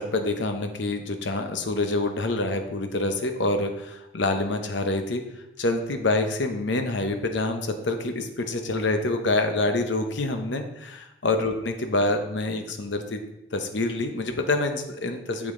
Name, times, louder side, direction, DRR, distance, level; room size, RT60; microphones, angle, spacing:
voice 1, 0.0-5.2 5.6-13.2 13.5-15.5, left 2 dB, 70° left, 6 dB, 0.8 m, -26 dB
7.3 x 7.1 x 3.8 m, 0.89 s
head